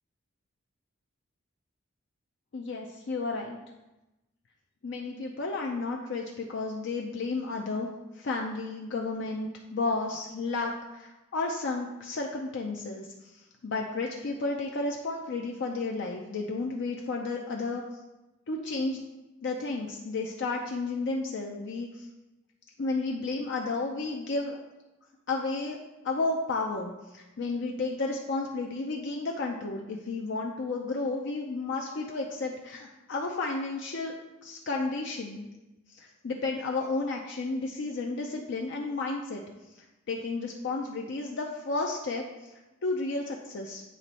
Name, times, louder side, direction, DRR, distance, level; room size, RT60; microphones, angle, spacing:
voice 1, 2.5-3.6 4.8-13.3 13.6-17.8 18.5-19.0 19.4-22.1 22.8-24.6 25.3-25.8 26.0-34.1 34.4-35.4 35.9-39.4 40.1-43.8, left 3 dB, 60° left, 0 dB, 0.5 m, -32 dB
8.4 x 3.0 x 4.2 m, 1.0 s
head